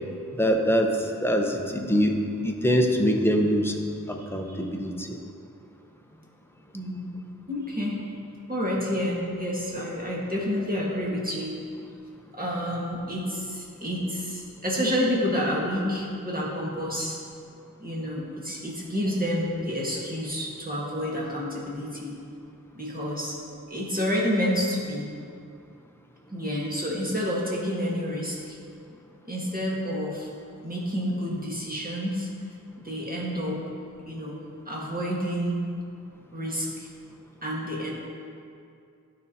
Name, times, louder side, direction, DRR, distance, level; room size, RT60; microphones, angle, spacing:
voice 1, 0.3-3.8 4.1-5.2, equal, 5° left, 2 dB, 0.7 m, -24 dB
voice 2, 6.7-7.1 7.5-8.0 8.5-11.6 12.3-17.2 17.8-22.2 22.7-25.1 26.3-28.6 29.2-30.3 30.6-32.3 32.8-33.6 34.1-34.4 34.6-35.6 36.3-36.9 37.4-37.9, equal, 25° right, -4 dB, 1.6 m, -29 dB
11.5 x 5.4 x 2.8 m, 2.4 s
wide cardioid pair, 40°, 32 cm